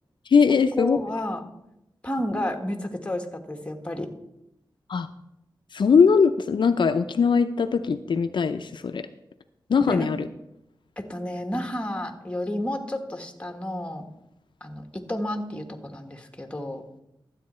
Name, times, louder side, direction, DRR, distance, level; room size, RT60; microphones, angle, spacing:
voice 1, 0.3-1.0 4.9-5.1 5.7-9.1 9.7-10.3, left 5 dB, 70° left, 8 dB, 0.5 m, -20 dB
voice 2, 0.8-1.4 2.0-4.1 9.9-10.1 11.0-14.1 14.6-16.8, left 1 dB, 15° left, 6 dB, 1.4 m, -31 dB
12.5 x 8.1 x 4.3 m, 0.85 s
wide cardioid pair, 85°, 8 cm